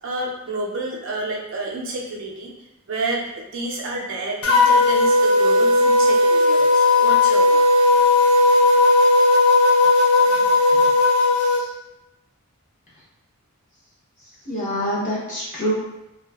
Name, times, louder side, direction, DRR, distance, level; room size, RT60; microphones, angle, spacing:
voice 1, 0.0-2.5 2.9-7.6, right 2 dB, 60° right, -2 dB, 0.4 m, -29 dB
sound 1, 4.4-11.6, left 2 dB, 70° left, 0.4 m, -16 dB
voice 2, 11.3-11.7 14.4-15.7, equal, 35° left, -8 dB, 0.7 m, -27 dB
2.5 x 2.3 x 2.2 m, 0.92 s
head